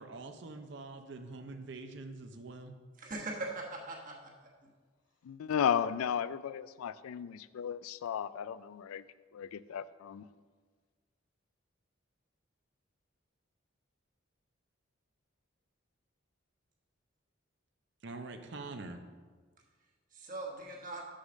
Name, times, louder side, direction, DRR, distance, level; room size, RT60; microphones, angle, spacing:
voice 1, 0.0-2.8 18.0-19.0, right 3 dB, 55° right, 6 dB, 0.6 m, -45 dB
voice 2, 3.0-4.3 20.1-21.0, right 2 dB, 40° right, -1 dB, 1.3 m, -40 dB
voice 3, 5.2-9.0 9.3-10.3, left 8 dB, 85° left, 16 dB, 0.3 m, -34 dB
6.4 x 5.6 x 6.2 m, 1.5 s
head